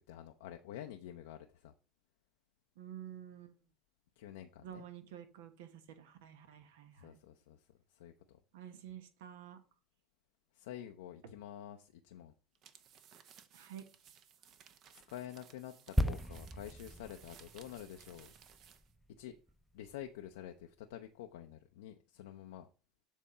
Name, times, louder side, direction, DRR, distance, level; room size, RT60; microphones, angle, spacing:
voice 1, 0.1-1.7 4.2-4.8 7.0-7.6 8.0-8.4 10.6-12.3 15.1-15.7 16.0-18.3 19.2-19.4 19.7-22.7, left 11 dB, 85° left, 6 dB, 0.5 m, -48 dB
voice 2, 2.8-3.5 4.6-7.2 8.5-9.6 13.5-13.8, right 10 dB, 80° right, 9 dB, 1.1 m, -50 dB
sound 1, 12.6-18.9, right 8 dB, 55° right, 0.9 m, -60 dB
sound 2, 16.0-19.6 19.9-20.1, equal, ahead, 0.6 m, -37 dB
7.4 x 3.7 x 5.6 m, 0.35 s
hypercardioid pair, 85°, 0 cm